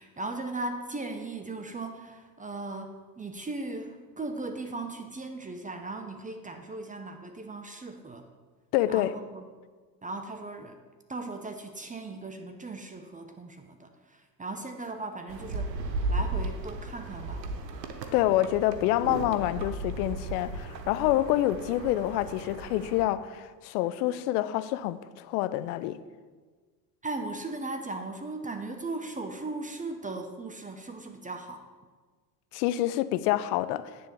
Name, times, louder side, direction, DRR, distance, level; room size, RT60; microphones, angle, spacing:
voice 1, 0.0-8.2 8.9-9.4 10.0-10.8 11.1-15.7 16.1-17.4 27.0-31.7, right 2 dB, 15° right, 0.8 m, -38 dB
voice 2, 8.7-9.1 18.1-26.0 32.5-33.9, left 14 dB, 70° left, 0.6 m, -27 dB
sound 1, 15.3-23.0, right 2 dB, 90° right, 0.8 m, -35 dB
9.9 x 3.7 x 6.9 m
hypercardioid pair, 70°, 49 cm